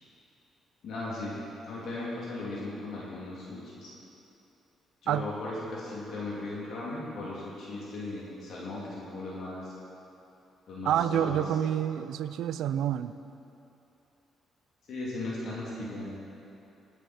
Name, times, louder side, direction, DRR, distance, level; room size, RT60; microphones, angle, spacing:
voice 1, 0.8-3.9 5.0-9.7 10.7-11.4 14.9-16.1, left 2 dB, 65° left, -6 dB, 3.0 m, -37 dB
voice 2, 10.8-13.1, right 10 dB, 80° right, 13 dB, 0.4 m, -28 dB
17.5 x 8.2 x 4.4 m, 2.9 s
cardioid pair, 90°, 0 cm